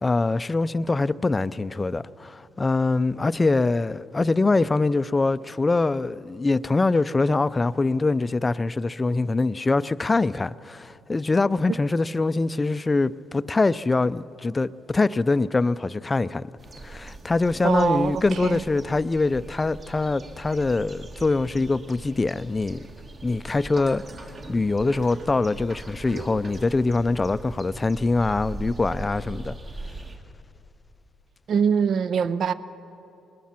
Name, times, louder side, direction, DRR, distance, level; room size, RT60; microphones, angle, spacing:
voice 1, 0.0-16.4 16.8-22.9 23.2-29.6, left 3 dB, 25° left, 0.4 m, -24 dB
sound 1, 16.6-30.2, right 2 dB, 40° right, 1.8 m, -40 dB
voice 2, 17.6-18.6 31.5-32.5, right 6 dB, 60° right, 0.5 m, -23 dB
22.5 x 20.0 x 5.8 m
cardioid pair, 90°, 0 cm